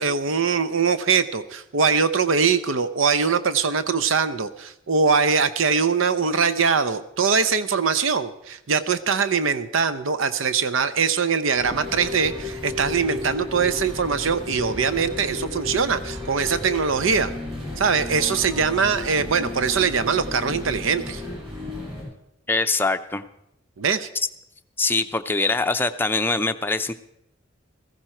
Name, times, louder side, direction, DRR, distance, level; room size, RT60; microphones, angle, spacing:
voice 1, 0.0-17.3 17.8-21.2 23.8-24.1, right 5 dB, 75° right, 13 dB, 0.7 m, -22 dB
sound 1, 11.6-22.0, left 3 dB, 30° right, 7.5 m, -33 dB
voice 2, 22.5-23.2 24.8-26.9, left 3 dB, 10° left, 8 dB, 0.6 m, -23 dB
15.5 x 15.0 x 4.4 m, 0.81 s
head